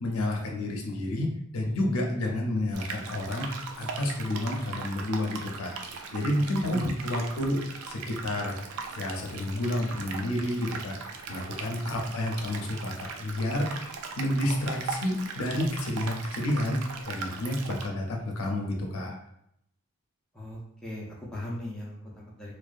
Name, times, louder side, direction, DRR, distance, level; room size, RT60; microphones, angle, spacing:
voice 1, 0.0-3.5 3.8-7.6 7.9-8.6 9.0-13.8 14.2-16.8 17.1-19.2, left 1 dB, 75° left, 1 dB, 0.5 m, -30 dB
sound 1, 2.7-17.9, right 4 dB, 75° right, 0.3 m, -39 dB
voice 2, 20.3-22.5, left 1 dB, 5° left, -5 dB, 0.4 m, -39 dB
2.6 x 2.1 x 2.4 m, 0.75 s
head